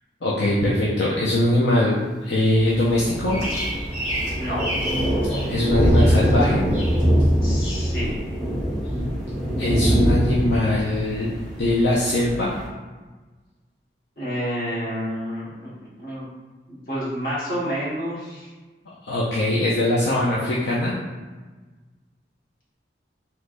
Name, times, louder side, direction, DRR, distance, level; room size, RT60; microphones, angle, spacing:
voice 1, 0.2-3.4 5.5-6.6 9.6-11.3 11.6-12.5 19.0-20.9, left 1 dB, 75° left, -6 dB, 0.5 m, -21 dB
Race car auto racing, 2.6-6.9, equal, 45° right, 0.4 m, -33 dB
Thunder, 2.7-12.7, equal, 5° left, 0.7 m, -23 dB
Bird vocalization bird call bird song, 3.0-5.5 5.8-6.4 6.7-7.3 7.6-7.9, equal, 40° left, 1.4 m, -31 dB
voice 2, 4.3-4.7 7.4-8.1 14.2-16.2 16.7-18.5, equal, 55° left, -9 dB, 1.3 m, -29 dB
3.3 x 3.0 x 2.5 m, 1.3 s
head